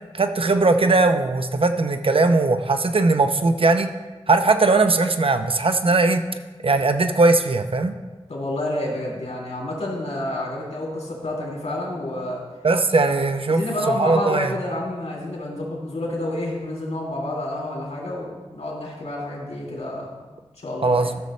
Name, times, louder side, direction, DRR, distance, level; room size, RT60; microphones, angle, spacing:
voice 1, 0.1-3.9 4.3-6.2 6.6-7.9 12.6-13.6 14.0-14.5 20.8-21.2, right 3 dB, 55° right, 7 dB, 0.7 m, -19 dB
voice 2, 8.3-12.4 13.5-20.1 20.6-21.1, left 1 dB, 80° left, -3 dB, 3.0 m, -29 dB
13.5 x 6.8 x 3.2 m, 1.3 s
wide cardioid pair, 70°, 11 cm